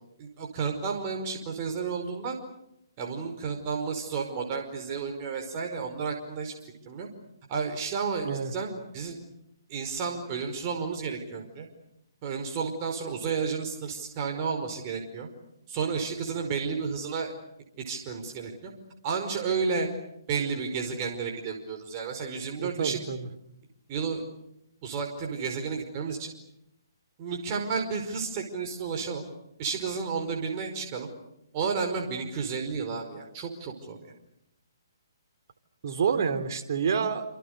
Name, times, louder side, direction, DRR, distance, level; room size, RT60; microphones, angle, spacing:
voice 1, 0.2-2.4 3.0-6.5 6.9-7.1 7.5-9.2 9.7-11.7 12.2-15.3 15.7-17.3 17.9-18.7 19.0-19.9 20.3-23.0 23.9-24.2 24.8-26.3 27.2-29.2 29.6-31.1 31.5-34.1, right 5 dB, 35° right, 3 dB, 5.2 m, -32 dB
voice 2, 22.6-23.3 35.8-37.2, right 6 dB, 55° right, 6 dB, 3.6 m, -28 dB
28.5 x 28.0 x 6.8 m, 0.80 s
hypercardioid pair, 140°, 2 cm